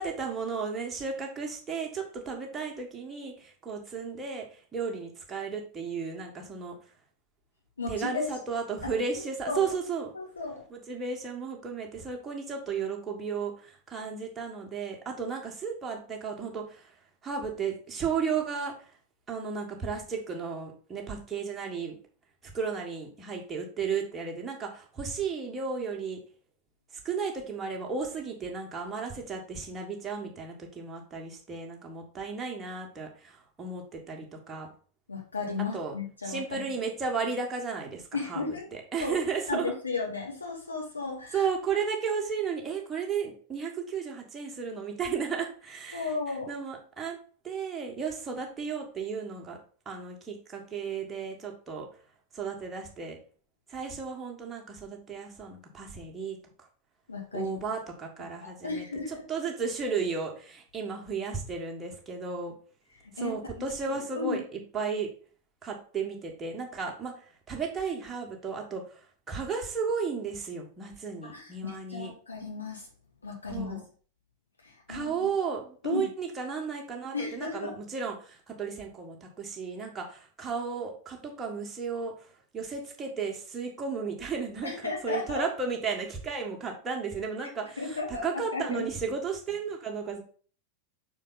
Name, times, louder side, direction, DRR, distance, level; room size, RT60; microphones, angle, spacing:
voice 1, 0.0-4.4 4.7-6.8 7.9-10.1 10.7-16.9 17.2-18.7 19.3-22.0 22.4-26.2 27.0-34.7 35.7-35.9 36.2-38.0 38.3-38.4 38.9-39.7 41.3-46.1 46.5-47.2 47.4-49.6 49.8-51.9 52.3-53.2 53.7-56.4 57.3-62.5 63.2-65.1 65.6-67.1 67.5-68.8 69.3-72.1 73.5-73.8 74.9-82.1 82.5-90.2, right 5 dB, 20° right, 0 dB, 1.6 m, -34 dB
voice 2, 7.8-8.3 8.8-8.9 9.5-9.7 10.1-10.6 35.1-36.7 38.1-38.6 39.0-39.2 39.5-41.5 45.9-46.5 57.1-57.6 58.4-59.2 63.2-64.4 71.3-72.9 73.2-73.8 74.6-75.3 75.8-76.1 77.1-77.7 84.6-85.4 87.8-88.9, left 4 dB, 75° left, -1 dB, 2.0 m, -34 dB
5.8 x 4.4 x 4.0 m, 0.44 s
figure-of-eight pair, 90°, 0 cm